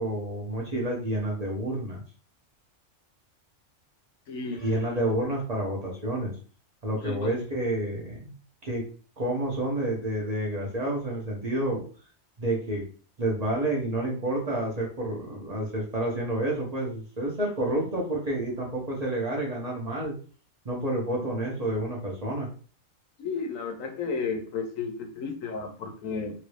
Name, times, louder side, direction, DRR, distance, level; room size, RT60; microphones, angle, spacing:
voice 1, 0.0-2.0 4.6-6.3 6.8-8.3 8.6-8.8 9.2-11.8 12.4-12.9 13.2-20.1 20.6-22.5, right 1 dB, 35° right, -2 dB, 0.8 m, -29 dB
voice 2, 4.3-4.8 6.9-7.3 23.2-26.3, left 5 dB, 90° left, 4 dB, 1.1 m, -33 dB
3.0 x 2.6 x 3.1 m, 0.40 s
omnidirectional pair, 1.3 m